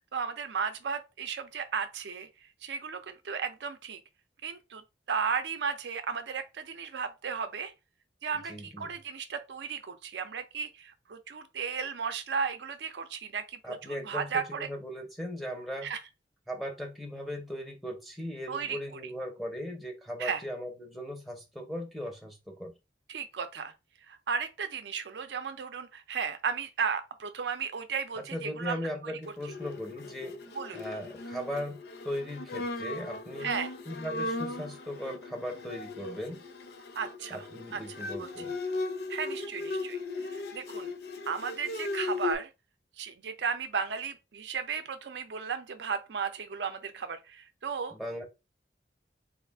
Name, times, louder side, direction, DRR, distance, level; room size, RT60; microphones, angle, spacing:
voice 1, 0.1-2.3 2.6-4.0 4.4-4.8 5.1-7.7 8.2-13.8 14.0-14.7 15.8-16.0 18.5-19.0 20.2-20.4 23.1-23.7 24.1-29.1 30.5-30.8 33.4-33.7 37.0-37.5 37.7-37.8 38.2-38.3 39.1-40.0 40.3-40.9 41.3-42.5 43.0-47.9, right 6 dB, 80° right, 0.5 m, -34 dB
voice 2, 8.5-8.9 13.6-14.3 14.6-15.9 16.5-22.7 28.2-30.3 30.7-33.5 33.9-36.4 37.3-38.5 47.9-48.2, equal, ahead, 0.5 m, -38 dB
Bowed string instrument, 29.4-42.4, left 3 dB, 65° left, 0.5 m, -37 dB
3.5 x 2.4 x 3.4 m
head